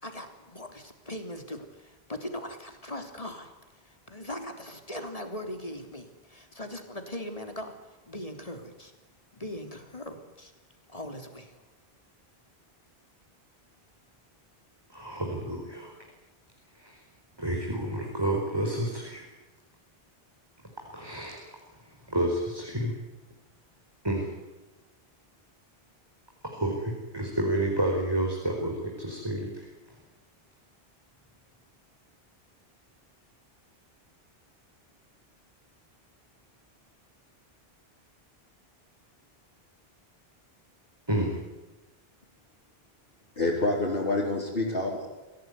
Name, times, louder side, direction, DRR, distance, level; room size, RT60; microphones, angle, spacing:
voice 1, 0.0-7.7 8.1-8.9 9.3-10.5 10.9-11.6, left 1 dB, 35° left, 5 dB, 3.5 m, -40 dB
voice 2, 14.9-15.9 16.8-17.0 17.4-19.3 20.9-21.4 22.1-22.9 24.0-24.3 26.4-29.7 41.1-41.4, right 1 dB, 25° right, 0 dB, 4.8 m, -30 dB
voice 3, 43.4-45.1, left 2 dB, 65° left, -5 dB, 4.9 m, -27 dB
26.0 x 17.5 x 9.6 m, 1.1 s
omnidirectional pair, 1.0 m